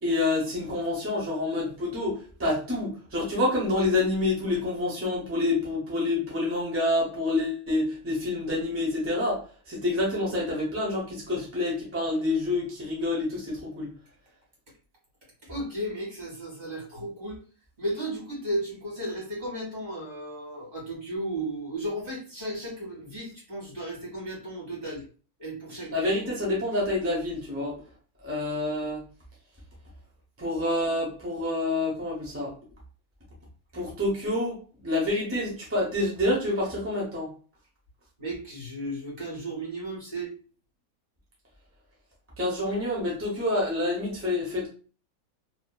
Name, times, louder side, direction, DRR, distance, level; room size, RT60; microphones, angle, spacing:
voice 1, 0.0-13.9 25.9-27.8 28.2-29.0 30.4-32.5 33.7-37.3 42.4-44.7, left 2 dB, 15° right, -5 dB, 0.5 m, -28 dB
voice 2, 15.5-17.4 17.8-25.0 25.4-26.1 38.2-40.3, right 1 dB, 35° right, -4 dB, 1.6 m, -34 dB
2.8 x 2.6 x 2.2 m, 0.39 s
omnidirectional pair, 1.6 m